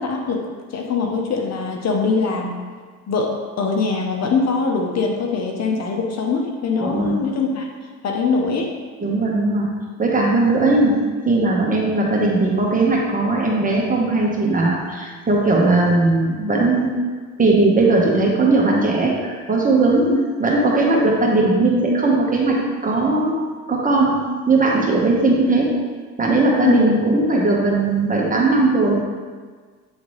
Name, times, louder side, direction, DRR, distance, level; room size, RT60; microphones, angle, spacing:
voice 1, 0.0-2.6 3.1-7.7 8.0-8.7 20.1-20.2 26.6-26.9, left 4 dB, 60° left, 1 dB, 0.9 m, -22 dB
voice 2, 6.8-7.1 9.0-9.7 10.0-11.0 11.3-17.0 17.4-20.1 20.4-22.6 22.8-23.4 23.7-25.7 26.2-28.9, right 2 dB, 25° right, -3 dB, 1.4 m, -18 dB
8.4 x 3.7 x 3.2 m, 1.5 s
cardioid pair, 90°, 30 cm